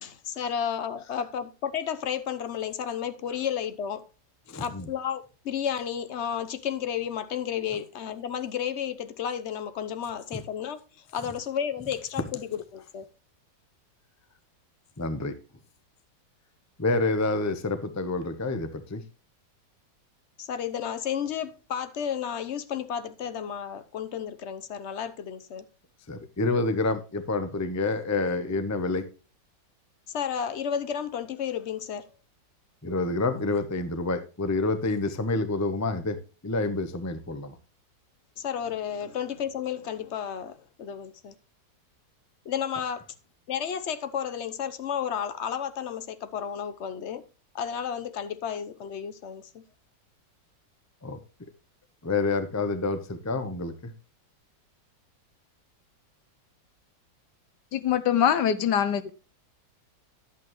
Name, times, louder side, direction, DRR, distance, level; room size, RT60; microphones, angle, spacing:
voice 1, 0.0-4.1 4.6-10.8 11.1-13.1 20.4-25.6 30.1-32.0 38.4-41.3 42.4-43.0 43.5-47.2 47.5-49.6, left 8 dB, 50° left, 0.9 m, -32 dB
voice 2, 4.5-4.9 10.3-10.4 15.0-15.3 16.8-19.0 26.1-29.1 32.8-37.5 51.0-51.2 52.0-53.9, left 3 dB, 15° left, 0.6 m, -28 dB
voice 3, 57.7-59.1, left 9 dB, 75° left, 1.3 m, -23 dB
11.0 x 8.4 x 3.1 m
omnidirectional pair, 2.0 m